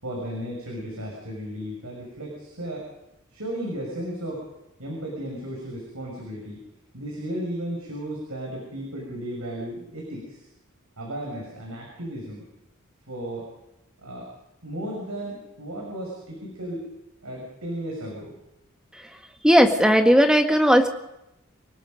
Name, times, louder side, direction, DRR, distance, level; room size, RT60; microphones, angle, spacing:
voice 1, 0.0-2.9 3.3-4.4 4.8-6.6 6.9-10.4 11.0-12.4 13.1-13.5 14.0-14.3 14.6-16.8 17.2-18.3, right 1 dB, 85° right, -1 dB, 6.8 m, -34 dB
voice 2, 19.4-20.9, equal, 5° right, 4 dB, 1.8 m, -16 dB
29.0 x 19.0 x 5.4 m, 0.87 s
head